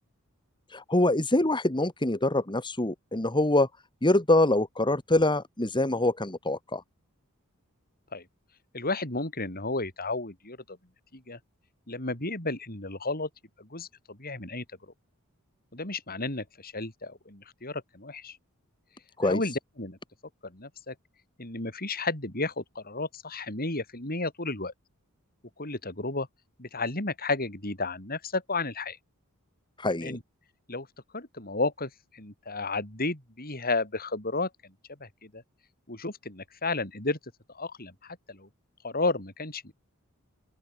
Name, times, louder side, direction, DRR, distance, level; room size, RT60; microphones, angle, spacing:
voice 1, 0.7-3.7 4.0-6.8 19.2-19.4 29.8-30.2, left 1 dB, 20° left, 2.1 m, -25 dB
voice 2, 8.7-10.8 11.1-11.4 11.9-13.3 13.6-14.6 15.7-18.4 19.2-20.0 20.4-21.0 21.4-24.7 25.6-26.3 26.6-29.0 30.0-30.2 30.7-30.9 31.1-34.7 35.0-35.4 35.9-37.2 37.5-38.5 38.8-39.7, left 3 dB, 45° left, 6.8 m, -33 dB
open air
head